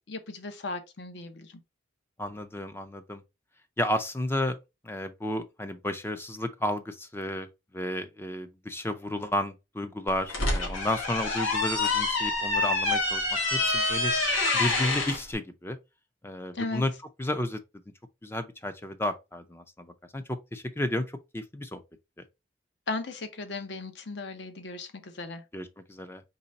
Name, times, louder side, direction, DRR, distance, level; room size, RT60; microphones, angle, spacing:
voice 1, 0.1-1.5 16.5-16.9 22.9-25.4, left 3 dB, 60° left, 0.8 m, -36 dB
voice 2, 2.2-3.2 3.8-4.6 4.8-7.5 7.7-13.2 13.5-14.1 14.5-15.8 16.2-16.9 17.2-17.6 18.2-19.9 20.1-21.1 21.3-21.8 25.5-26.2, left 1 dB, 10° left, 0.4 m, -32 dB
sound 1, 10.1-15.2, left 2 dB, 90° left, 1.8 m, -27 dB
4.0 x 3.2 x 4.0 m
head